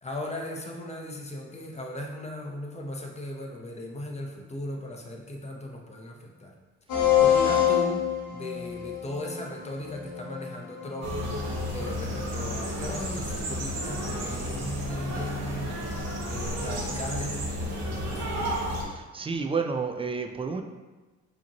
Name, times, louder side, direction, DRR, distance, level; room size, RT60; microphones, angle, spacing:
voice 1, 0.0-6.5 7.2-8.1 8.3-15.8 16.3-18.5, left 1 dB, 20° left, 1 dB, 0.7 m, -37 dB
sound 1, 6.9-12.2, left 9 dB, 80° left, 1.0 m, -27 dB
voice 2, 6.9-7.2 18.8-20.6, right 5 dB, 20° right, 5 dB, 0.3 m, -31 dB
sound 2, 11.0-18.8, equal, 60° right, 0.9 m, -32 dB
4.9 x 3.0 x 2.8 m, 1.2 s
cardioid pair, 90°, 30 cm